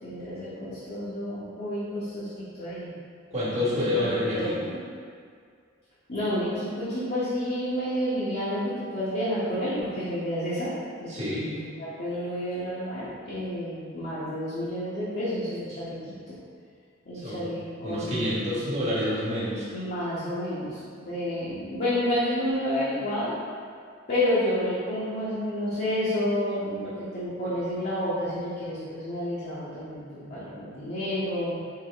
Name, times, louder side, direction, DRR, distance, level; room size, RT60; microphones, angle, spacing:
voice 1, 0.0-2.9 3.7-4.8 6.1-10.7 11.0-11.1 11.6-16.0 16.3-16.4 17.0-18.2 19.7-23.3 24.1-31.6, left 1 dB, 50° left, -12 dB, 1.1 m, -30 dB
voice 2, 3.3-4.7 11.1-11.5 17.2-17.5 17.8-19.7, left 1 dB, 35° right, -9 dB, 1.4 m, -28 dB
4.7 x 2.8 x 3.5 m, 2.1 s
head